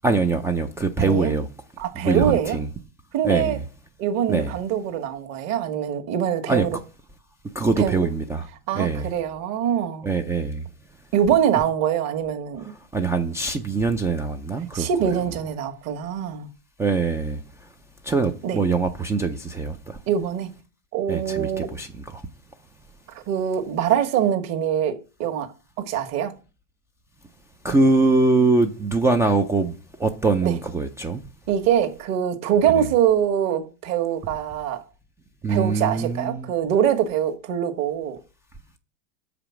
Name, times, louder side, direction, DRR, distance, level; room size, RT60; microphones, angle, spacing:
voice 1, 0.0-1.5 2.0-2.7 3.2-3.6 4.3-4.5 6.5-6.7 7.6-8.4 8.7-9.1 10.0-10.6 12.9-14.9 16.8-17.4 18.1-19.7 21.1-22.2 27.6-29.7 30.0-31.2 32.7-32.9 35.4-36.5, right 3 dB, 10° right, 0.3 m, -22 dB
voice 2, 1.0-1.3 1.8-2.6 3.1-3.6 4.0-6.8 7.8-8.0 8.7-10.1 11.1-12.7 14.7-16.5 18.4-18.6 20.1-20.5 20.9-21.7 23.1-25.5 25.8-26.3 30.4-30.6 31.5-34.8 35.5-38.2, right 9 dB, 40° right, 1.4 m, -24 dB
7.0 x 5.1 x 5.8 m
hypercardioid pair, 110°, 40 cm